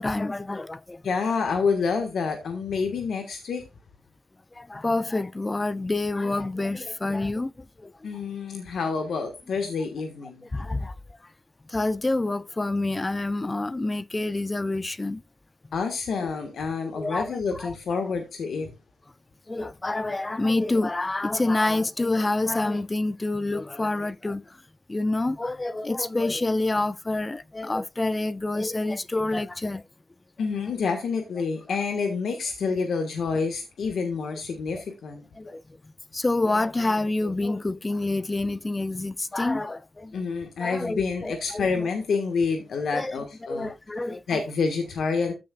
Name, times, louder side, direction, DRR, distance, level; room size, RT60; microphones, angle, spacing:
voice 1, 0.0-1.0 4.5-8.1 10.5-10.9 11.7-15.2 17.0-17.7 18.0-18.1 19.5-24.6 24.9-29.8 31.7-31.8 34.7-34.8 35.4-40.2 40.6-41.9 42.9-43.2 43.5-44.4, left 2 dB, 15° left, 0.3 m, -28 dB
voice 2, 1.0-3.6 8.0-10.4 15.7-18.7 30.4-35.2 40.1-43.7 44.3-45.3, left 5 dB, 55° left, 1.5 m, -28 dB
14.0 x 6.4 x 2.4 m
wide cardioid pair, 165°, 0 cm